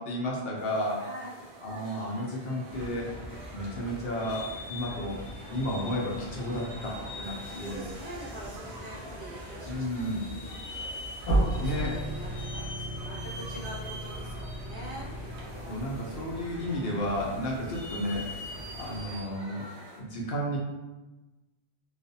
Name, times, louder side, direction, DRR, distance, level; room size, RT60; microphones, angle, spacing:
voice 1, 0.0-1.1 1.6-3.1 3.5-5.2 5.5-7.9 9.7-10.2 11.6-12.0 15.7-19.6 20.0-20.6, equal, 65° left, -2 dB, 0.8 m, -32 dB
sound 1, 0.6-20.0, right 2 dB, 85° right, 0.9 m, -49 dB
voice 2, 1.0-1.4 7.2-10.5 11.5-15.1 15.5-15.8 16.6-16.9, equal, 40° right, -9 dB, 0.8 m, -45 dB
sound 2, 2.7-19.2, left 1 dB, 50° left, 0.3 m, -42 dB
sound 3, 11.3-16.1, right 1 dB, 90° left, 1.0 m, -32 dB
2.4 x 2.4 x 2.6 m, 1.1 s
omnidirectional pair, 1.1 m